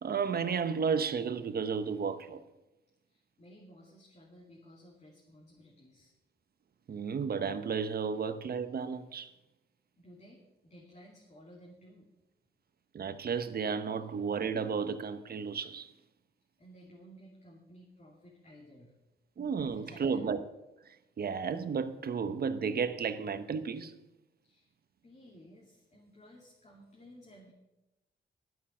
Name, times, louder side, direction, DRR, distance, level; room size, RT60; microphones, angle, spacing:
voice 1, 0.0-2.4 6.9-9.3 12.9-15.9 19.4-20.5 20.9-23.9, right 6 dB, 50° right, 1.0 m, -33 dB
voice 2, 3.1-6.1 10.0-12.1 16.6-18.9 19.6-20.3 24.4-24.7 25.0-27.5, equal, 35° left, 2.7 m, -55 dB
11.5 x 8.6 x 6.2 m
cardioid pair, 85°, 20 cm